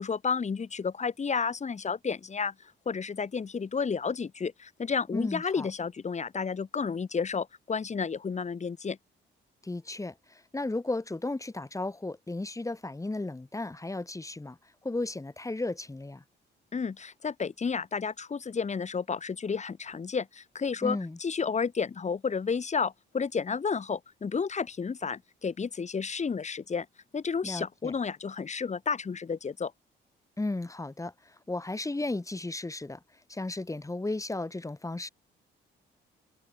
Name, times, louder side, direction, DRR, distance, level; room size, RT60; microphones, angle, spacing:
voice 1, 0.0-9.0 16.7-26.9 27.1-29.7, left 5 dB, 35° left, 2.8 m, -31 dB
voice 2, 5.1-5.7 9.6-14.6 14.8-16.2 20.8-21.2 27.4-27.9 30.4-33.0 33.3-35.1, left 2 dB, 15° left, 7.0 m, -34 dB
cardioid pair, 90°, 20 cm